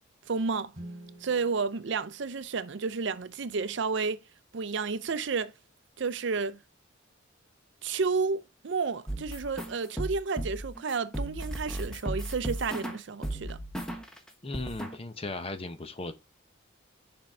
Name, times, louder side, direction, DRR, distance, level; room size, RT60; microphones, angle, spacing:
voice 1, 0.3-0.7 1.2-4.2 4.5-5.5 6.0-6.6 7.8-13.6, right 4 dB, 60° right, 0.5 m, -31 dB
Guitar, 0.7-3.3, right 1 dB, 35° right, 3.2 m, -49 dB
sound 1, 9.1-14.2 14.5-15.0, right 1 dB, 5° left, 1.2 m, -35 dB
voice 2, 14.4-16.1, left 2 dB, 30° left, 0.8 m, -36 dB
7.9 x 5.3 x 3.3 m
head